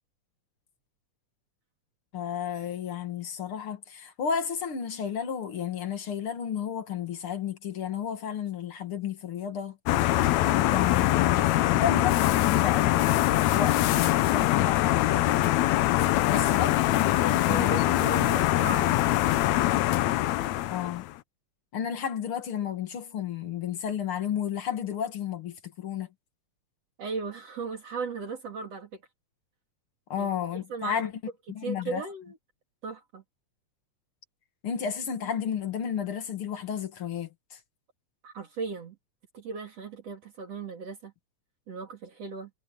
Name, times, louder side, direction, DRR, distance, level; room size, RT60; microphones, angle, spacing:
voice 1, 2.1-9.8 10.5-13.1 13.5-15.4 16.2-18.0 20.7-21.1 21.7-26.1 30.1-31.1 31.5-32.0 34.6-37.6, left 8 dB, 50° left, 2.5 m, -32 dB
sound 1, 9.9-21.1, left 15 dB, 80° left, 2.0 m, -23 dB
voice 2, 17.3-19.1 27.0-29.0 30.2-30.3 30.7-31.1 31.6-32.4 32.8-33.2 38.2-39.0 39.3-41.1 41.7-42.5, right 5 dB, 60° right, 3.6 m, -36 dB
omnidirectional pair, 3.3 m